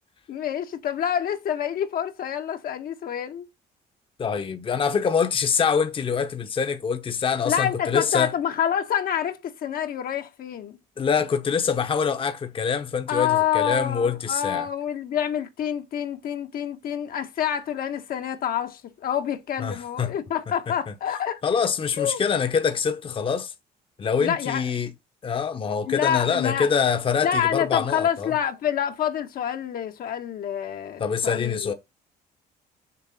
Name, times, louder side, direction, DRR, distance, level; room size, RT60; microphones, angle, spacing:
voice 1, 0.3-3.5 7.4-10.8 13.1-21.4 22.0-22.2 24.2-24.6 25.8-26.7 27.2-31.7, left 9 dB, 60° left, 1.2 m, -27 dB
voice 2, 4.2-8.3 11.0-14.7 19.6-20.1 21.4-23.5 24.0-24.9 25.2-28.3 31.0-31.7, left 6 dB, 30° left, 1.0 m, -25 dB
6.7 x 3.3 x 5.7 m
cardioid pair, 110°, 17 cm